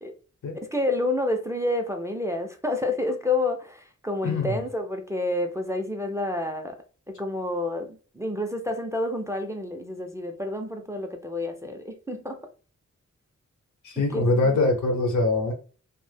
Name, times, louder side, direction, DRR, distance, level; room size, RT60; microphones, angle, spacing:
voice 1, 0.5-6.8 7.1-12.5 14.0-14.6, left 2 dB, 10° right, 0.3 m, -29 dB
voice 2, 4.2-4.6 13.8-15.5, left 2 dB, 85° left, 0.7 m, -23 dB
2.0 x 2.0 x 3.1 m
wide cardioid pair, 100°, 29 cm